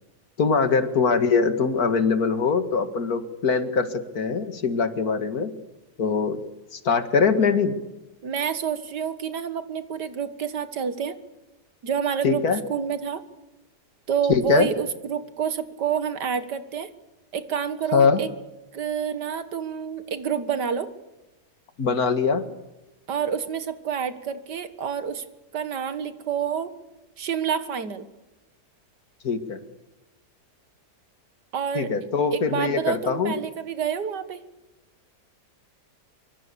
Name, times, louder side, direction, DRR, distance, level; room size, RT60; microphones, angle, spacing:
voice 1, 0.4-5.5 6.0-6.4 6.7-7.7 12.2-12.6 14.3-14.7 17.9-18.2 21.8-22.4 29.2-29.6 31.7-33.3, left 5 dB, 65° left, 10 dB, 2.3 m, -22 dB
voice 2, 8.2-11.2 11.8-12.4 12.7-13.2 14.1-16.9 17.3-18.3 18.7-20.9 23.1-25.2 25.5-26.7 27.2-28.1 31.5-31.9 32.3-34.4, right 7 dB, 85° right, 12 dB, 2.2 m, -28 dB
24.0 x 24.0 x 6.9 m, 1.0 s
omnidirectional pair, 1.8 m